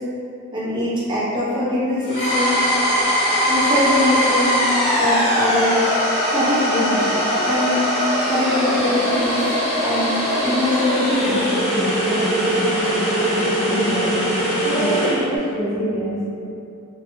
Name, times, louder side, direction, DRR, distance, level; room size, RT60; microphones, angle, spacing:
voice 1, 0.5-2.6 3.5-4.6 4.9-5.8 6.3-7.0 7.4-7.8 8.3-9.5 9.8-11.5, left 1 dB, 25° right, -10 dB, 0.8 m, -22 dB
sound 1, 2.1-15.2, equal, 30° left, 0.9 m, -21 dB
sound 2, 3.6-13.4, right 1 dB, 65° right, 0.4 m, -37 dB
voice 2, 13.6-14.2 14.6-16.2, right 1 dB, ahead, -19 dB, 0.9 m, -25 dB
2.6 x 2.3 x 2.8 m, 2.7 s
head